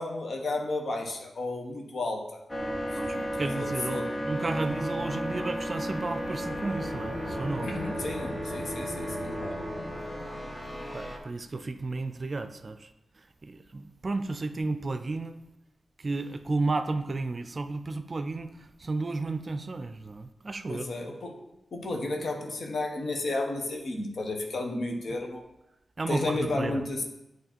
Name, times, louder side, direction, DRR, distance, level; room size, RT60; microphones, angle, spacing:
voice 1, 0.0-2.4 3.1-4.1 7.6-9.6 20.7-21.4 21.7-25.4 26.1-27.0, left 2 dB, 70° left, 1.1 m, -33 dB
sound 1, 2.5-11.2, equal, 30° left, 1.3 m, -33 dB
voice 2, 2.9-7.7 10.9-12.9 13.4-15.4 16.0-20.9 26.0-26.8, right 3 dB, 45° right, 0.4 m, -33 dB
9.0 x 3.1 x 4.4 m
cardioid pair, 60°, 0 cm